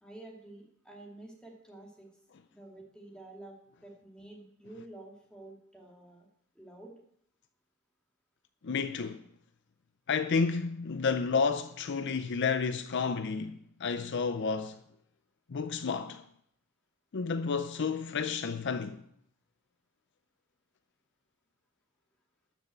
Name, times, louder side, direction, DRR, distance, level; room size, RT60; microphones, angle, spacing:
voice 1, 0.0-2.1 2.5-6.3 6.5-6.9, right 2 dB, 5° left, 2.4 m, -50 dB
voice 2, 8.6-9.2 10.1-14.8 15.5-16.3 17.1-19.0, left 5 dB, 60° left, 0.5 m, -31 dB
13.0 x 6.3 x 7.9 m
head